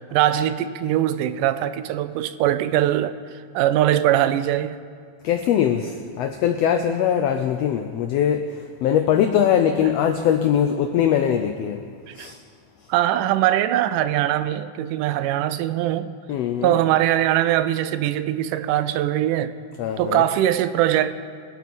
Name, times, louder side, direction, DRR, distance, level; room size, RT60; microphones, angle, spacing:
voice 1, 0.1-3.2 3.5-4.8 12.1-12.3 12.9-16.1 16.6-19.5 20.0-21.1, right 12 dB, 85° right, 2.1 m, -21 dB
voice 2, 5.2-8.4 8.8-11.8 12.2-12.4 16.3-16.8 19.8-20.3, left 9 dB, 85° left, 1.4 m, -21 dB
22.5 x 8.2 x 4.2 m
omnidirectional pair, 3.6 m